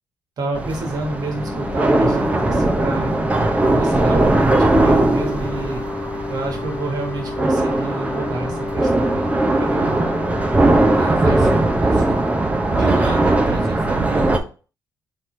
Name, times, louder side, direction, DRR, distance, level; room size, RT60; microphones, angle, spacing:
voice 1, 0.4-3.1 3.7-5.8 6.3-10.1, right 2 dB, 60° right, 1 dB, 1.5 m, -28 dB
sound 1, 0.5-14.4, right 2 dB, 20° right, 0.6 m, -19 dB
sound 2, 0.8-12.3, left 3 dB, 25° left, 0.4 m, -32 dB
voice 2, 10.9-12.2 12.8-14.5, right 4 dB, 80° right, -3 dB, 1.2 m, -28 dB
4.3 x 3.1 x 3.1 m, 0.36 s
cardioid pair, 105°, 7 cm